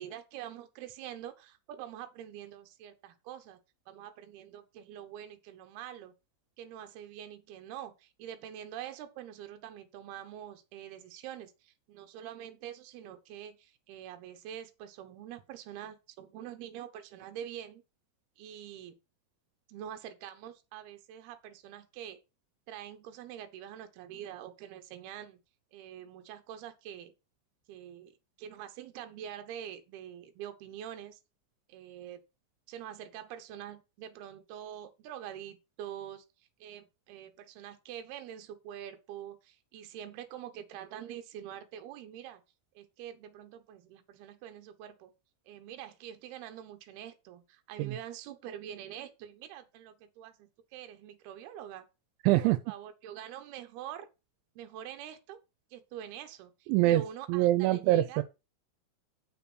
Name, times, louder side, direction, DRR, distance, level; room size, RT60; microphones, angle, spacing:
voice 1, 0.0-3.6 3.9-6.1 6.6-17.8 18.4-19.0 19.7-22.2 22.7-25.4 25.7-27.1 27.7-28.1 28.4-31.2 31.7-32.2 32.7-36.2 36.6-42.4 42.7-45.1 45.5-51.8 52.4-54.1 54.6-55.4 55.7-58.2, right 10 dB, 70° right, 2.9 m, -45 dB
voice 2, 52.2-52.6 56.7-57.0 57.3-58.2, right 15 dB, 85° right, 3.0 m, -24 dB
6.9 x 6.2 x 6.1 m
omnidirectional pair, 5.3 m